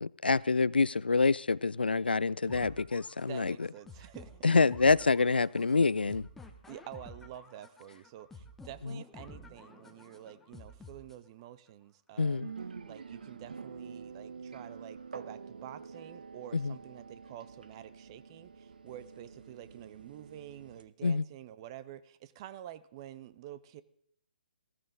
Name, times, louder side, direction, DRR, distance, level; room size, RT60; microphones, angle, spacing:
voice 1, 0.0-3.7 4.4-6.3 8.8-9.0 12.2-12.5 16.5-16.7 21.0-21.2, left 4 dB, 80° left, 0.4 m, -27 dB
sound 1, 2.5-11.5, left 2 dB, 5° left, 1.2 m, -52 dB
voice 2, 3.3-4.5 6.7-12.5 12.9-23.8, right 12 dB, 30° right, 0.8 m, -48 dB
sound 2, 12.4-20.8, right 5 dB, 65° right, 1.0 m, -47 dB
16.0 x 14.5 x 3.7 m
figure-of-eight pair, 135°, 5 cm